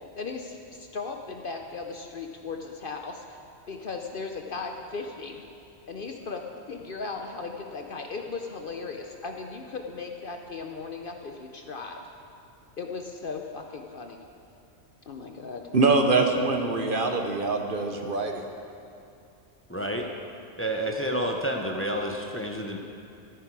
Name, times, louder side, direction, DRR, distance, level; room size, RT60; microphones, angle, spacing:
voice 1, 0.2-3.4 3.7-5.5 5.9-6.4 6.7-12.0 12.8-14.2 15.1-15.7, left 4 dB, 55° left, 3 dB, 0.8 m, -37 dB
voice 2, 15.7-18.4, right 3 dB, 50° right, 4 dB, 1.0 m, -24 dB
voice 3, 19.7-20.1 20.6-22.8, equal, 10° left, 1 dB, 0.7 m, -29 dB
15.0 x 9.5 x 4.7 m, 2.7 s
omnidirectional pair, 1.3 m